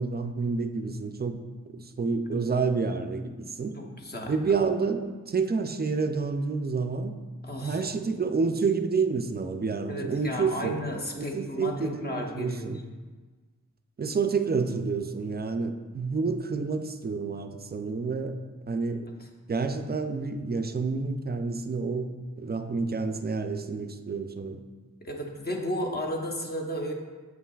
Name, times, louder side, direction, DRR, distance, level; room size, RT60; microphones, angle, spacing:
voice 1, 0.0-1.4 1.7-3.8 4.3-7.1 7.6-10.8 11.2-12.8 14.0-18.4 18.7-19.1 19.5-22.1 22.4-24.6, right 4 dB, 30° right, 7 dB, 0.4 m, -29 dB
voice 2, 3.7-4.6 7.4-7.8 9.9-12.8 19.2-19.3 25.0-26.9, equal, 30° left, 0 dB, 0.8 m, -34 dB
7.9 x 5.6 x 2.3 m, 1.4 s
wide cardioid pair, 110°, 32 cm